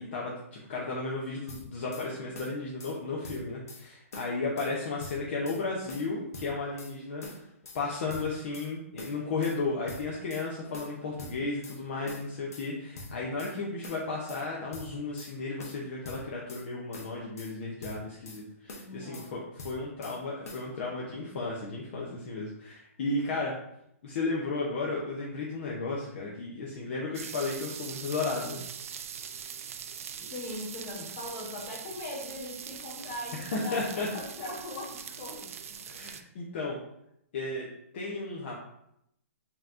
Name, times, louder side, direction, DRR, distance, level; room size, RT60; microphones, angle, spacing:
voice 1, 0.0-7.4 7.7-23.5 24.0-28.6 30.2-30.3 33.4-34.1 35.9-36.8 37.3-37.7 37.9-38.6, left 3 dB, 50° left, -4 dB, 0.8 m, -34 dB
sound 1, 1.5-2.1 2.4-3.0 3.2-3.8 4.1-4.7 5.0-5.6 5.9-6.9 7.2-7.8 8.1-8.7 9.0-9.6 9.9-10.5 10.7-11.8 12.1-12.7 13.0-13.6 13.8-14.4 14.7-15.3 15.6-16.7 16.9-17.5 17.8-18.4 18.7-19.3 19.6-20.2 20.5-20.7, left 2 dB, 75° left, 1.0 m, -44 dB
voice 2, 18.8-19.3 30.3-35.5, left 2 dB, 30° left, -4 dB, 1.3 m, -40 dB
sound 2, 27.1-36.2, right 8 dB, 70° right, 0.4 m, -42 dB
5.6 x 2.9 x 2.5 m, 0.78 s
hypercardioid pair, 160°, 8 cm